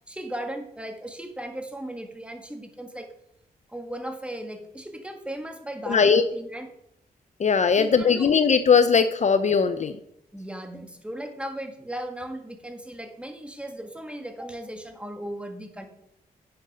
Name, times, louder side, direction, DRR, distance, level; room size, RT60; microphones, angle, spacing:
voice 1, 0.1-3.1 3.7-6.7 7.8-8.3 10.3-15.8, right 1 dB, 5° right, 5 dB, 1.7 m, -37 dB
voice 2, 5.9-6.2 7.4-9.9, left 6 dB, 45° left, 11 dB, 0.6 m, -19 dB
9.8 x 7.7 x 5.5 m, 0.77 s
cardioid pair, 90°, 16 cm